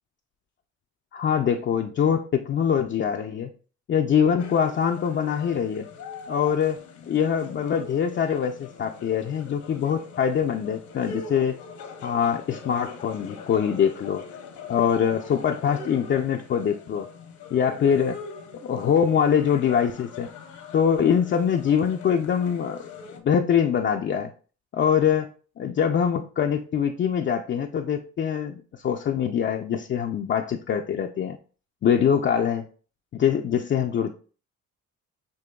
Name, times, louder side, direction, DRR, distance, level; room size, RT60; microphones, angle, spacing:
voice 1, 1.1-3.5 3.9-5.9 6.3-6.8 7.1-11.6 12.0-14.2 14.7-17.1 17.5-18.2 18.5-20.3 20.7-22.9 23.2-24.3 24.7-25.3 25.6-31.4 31.8-32.6 33.1-34.1, left 8 dB, 40° left, 3 dB, 0.4 m, -23 dB
sound 1, 4.4-23.2, left 4 dB, 75° left, 1.0 m, -42 dB
6.7 x 2.9 x 2.3 m, 0.38 s
cardioid pair, 90°, 30 cm